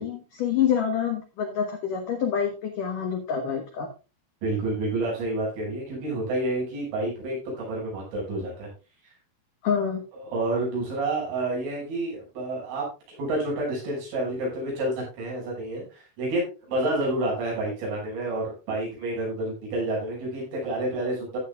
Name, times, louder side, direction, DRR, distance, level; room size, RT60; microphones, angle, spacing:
voice 1, 0.0-3.9 9.6-10.0, left 8 dB, 75° left, 4 dB, 1.9 m, -27 dB
voice 2, 4.4-8.7 10.2-21.4, right 2 dB, 70° right, -3 dB, 8.6 m, -29 dB
15.0 x 8.9 x 2.4 m, 0.31 s
omnidirectional pair, 5.8 m